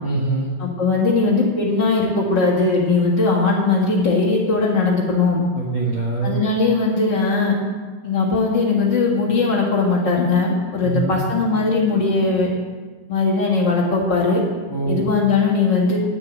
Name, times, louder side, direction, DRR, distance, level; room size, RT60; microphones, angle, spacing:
voice 1, 0.0-0.5 5.5-6.4 10.8-11.2 14.7-15.0, right 3 dB, 80° right, -4 dB, 1.1 m, -23 dB
voice 2, 0.6-5.4 6.2-7.5 8.0-12.5 13.1-14.4 14.9-16.0, left 3 dB, 45° left, -3 dB, 1.4 m, -19 dB
11.5 x 6.6 x 8.7 m, 1.4 s
omnidirectional pair, 4.8 m